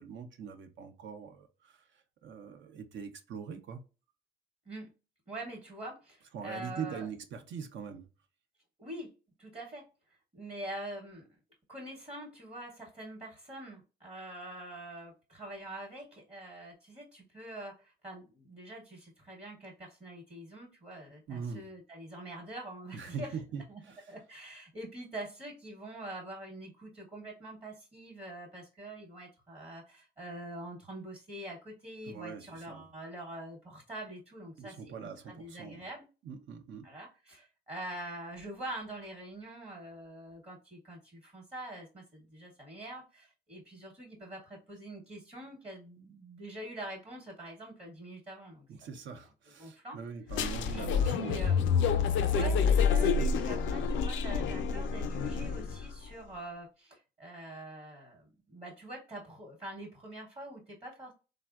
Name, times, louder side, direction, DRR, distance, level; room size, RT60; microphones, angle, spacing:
voice 1, 0.0-1.8 2.2-3.8 6.3-8.1 21.3-21.7 22.9-24.0 32.1-32.9 34.6-35.8 36.2-36.9 48.7-51.5, right 6 dB, 70° right, 0.6 m, -42 dB
voice 2, 5.3-7.1 8.8-9.1 9.4-9.9 10.3-11.4 11.7-23.4 23.7-23.8 24.1-36.0 36.8-48.9 49.6-50.0 50.7-51.6 52.2-61.1, right 1 dB, 30° right, 1.0 m, -45 dB
sound 1, 50.3-55.9, left 6 dB, 70° left, 0.4 m, -28 dB
3.4 x 2.0 x 2.3 m
cardioid pair, 90°, 20 cm